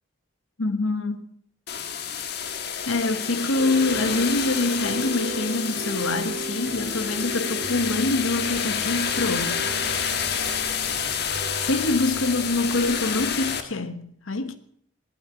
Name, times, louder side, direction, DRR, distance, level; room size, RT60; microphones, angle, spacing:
voice 1, 0.6-1.3 2.8-9.7 11.6-14.6, left 2 dB, 85° left, 1.2 m, -25 dB
sound 1, 1.7-13.6, left 7 dB, 55° left, 1.4 m, -29 dB
sound 2, 3.5-13.3, right 2 dB, 70° right, 5.2 m, -37 dB
20.0 x 8.7 x 5.9 m
head